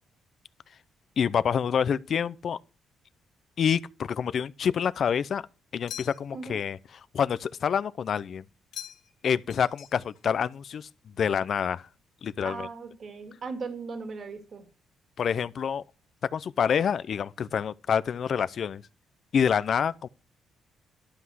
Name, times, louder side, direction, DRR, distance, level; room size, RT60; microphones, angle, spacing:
voice 1, 1.2-2.6 3.6-3.8 4.1-5.4 5.7-6.8 7.1-8.4 9.2-10.9 11.2-11.9 12.2-12.7 15.2-15.8 16.3-18.8 19.3-20.1, left 7 dB, 55° left, 0.6 m, -27 dB
sound 1, 5.9-6.5 8.7-9.2 9.5-10.3, left 9 dB, 80° left, 1.7 m, -43 dB
voice 2, 12.4-14.7, right 4 dB, 50° right, 2.0 m, -38 dB
11.5 x 5.7 x 6.3 m
cardioid pair, 90°, 0 cm